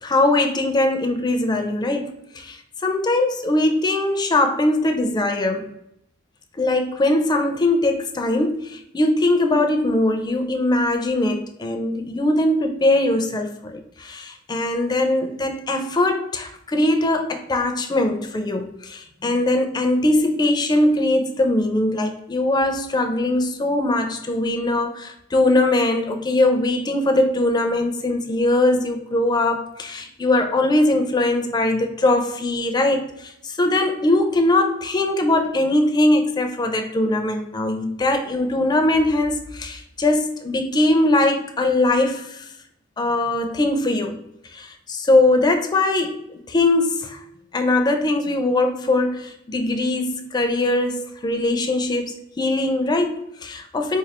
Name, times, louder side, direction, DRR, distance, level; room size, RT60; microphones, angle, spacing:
voice 1, 0.0-5.7 6.6-42.4 43.0-44.2 44.5-47.2 47.5-54.0, left 2 dB, 20° left, 5 dB, 0.4 m, -21 dB
4.1 x 2.3 x 2.9 m, 0.79 s
head